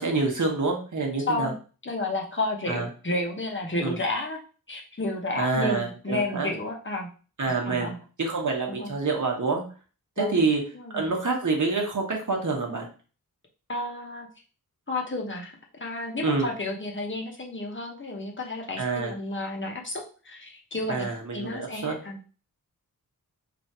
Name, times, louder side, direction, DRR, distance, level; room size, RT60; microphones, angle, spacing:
voice 1, 0.0-1.5 2.7-2.9 3.8-4.0 5.3-6.5 7.4-7.9 8.2-9.6 10.2-10.6 10.9-12.9 16.2-16.5 18.8-19.1 20.9-21.9, right 3 dB, 55° right, 1 dB, 1.1 m, -27 dB
voice 2, 1.8-4.4 4.7-7.1 7.5-8.0 8.7-8.9 10.2-10.4 10.7-11.1 13.7-14.3 14.9-15.5 15.8-21.1 21.3-22.2, left 2 dB, 35° left, 0 dB, 0.8 m, -31 dB
3.2 x 2.6 x 4.2 m, 0.37 s
wide cardioid pair, 95°, 36 cm